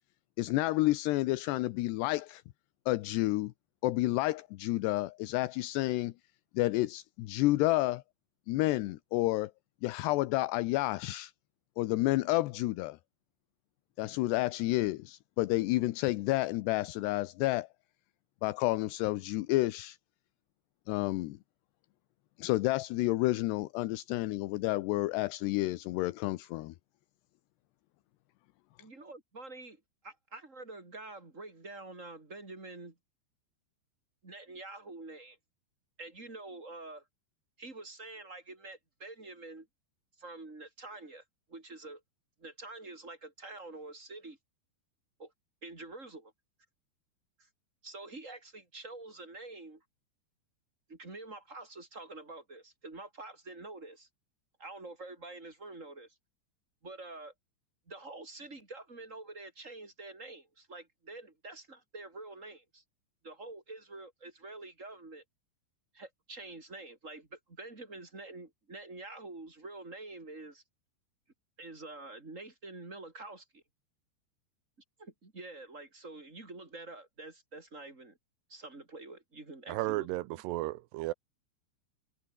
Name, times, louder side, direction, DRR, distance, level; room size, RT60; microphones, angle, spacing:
voice 1, 0.4-2.4 2.9-3.5 3.8-6.1 6.5-8.0 8.5-9.5 9.8-11.3 11.8-13.0 14.0-17.7 18.4-20.0 20.9-21.4 22.4-26.7, left 18 dB, 75° left, 2.7 m, -30 dB
voice 2, 28.8-33.0 34.2-35.4 36.0-37.0 37.6-39.7 40.2-41.2 41.5-42.0 42.4-44.4 45.2-45.3 45.6-46.3 47.4-47.5 47.8-49.8 50.9-54.1 54.6-56.1 56.8-57.3 57.9-62.8 63.2-65.2 65.9-70.6 71.6-73.6 75.0-78.2 78.5-80.4, right 2 dB, 20° right, 3.1 m, -47 dB
voice 3, 79.7-81.1, right 18 dB, 80° right, 2.6 m, -34 dB
omnidirectional pair, 5.4 m